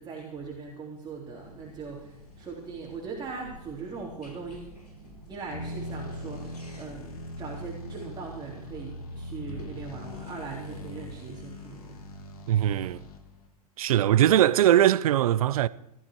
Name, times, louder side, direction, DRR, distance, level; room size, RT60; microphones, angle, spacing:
voice 1, 0.0-4.7 5.3-12.0, right 4 dB, 20° right, 3.7 m, -40 dB
sound 1, 1.3-11.3, equal, 90° left, 4.4 m, -50 dB
sound 2, 5.5-13.5, left 1 dB, 70° left, 3.1 m, -41 dB
voice 2, 12.5-13.0 13.8-15.7, right 12 dB, 65° right, 0.7 m, -21 dB
18.0 x 14.0 x 4.7 m
hypercardioid pair, 95°, 20 cm